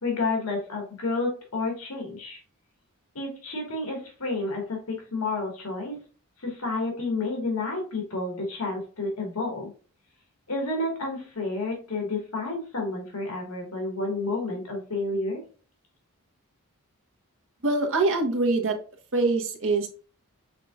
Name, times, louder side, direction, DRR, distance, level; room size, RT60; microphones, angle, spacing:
voice 1, 0.0-2.4 3.1-6.0 6.4-9.7 10.5-15.4, left 3 dB, 75° left, 0 dB, 1.7 m, -30 dB
voice 2, 17.6-18.8 19.1-19.9, right 3 dB, 65° right, 2 dB, 1.2 m, -24 dB
5.8 x 3.7 x 2.4 m, 0.39 s
head